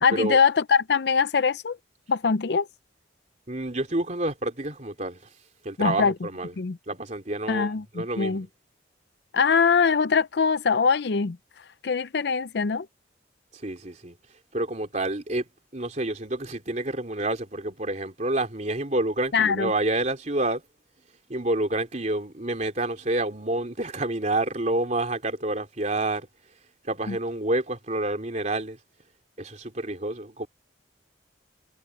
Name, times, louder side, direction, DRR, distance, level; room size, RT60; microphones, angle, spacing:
voice 1, 0.0-1.8 2.1-2.7 5.8-6.1 6.6-6.8 7.5-8.5 9.3-11.4 11.8-12.9 19.3-19.7 27.1-27.2, left 5 dB, 60° left, 0.5 m, -22 dB
voice 2, 3.5-5.2 5.6-6.5 6.9-8.4 13.5-14.1 14.5-15.5 15.7-20.6 21.3-26.3 26.8-28.8 29.4-30.5, right 2 dB, 40° right, 3.3 m, -28 dB
head